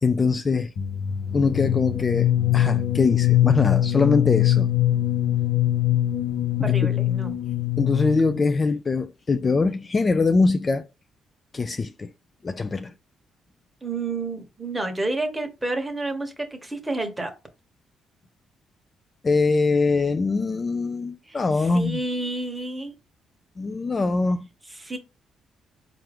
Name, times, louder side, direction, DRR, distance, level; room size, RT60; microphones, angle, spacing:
voice 1, 0.0-0.7 1.3-4.7 6.6-6.7 7.8-10.8 11.5-12.1 12.4-12.9 19.2-22.0 23.6-24.5, left 4 dB, 30° left, 0.3 m, -23 dB
sound 1, 0.8-8.4, left 12 dB, 70° left, 0.8 m, -22 dB
voice 2, 6.6-7.3 13.8-17.3 21.3-23.0 24.8-25.0, right 2 dB, 10° right, 1.1 m, -30 dB
4.4 x 2.5 x 3.4 m
cardioid pair, 90°, 0 cm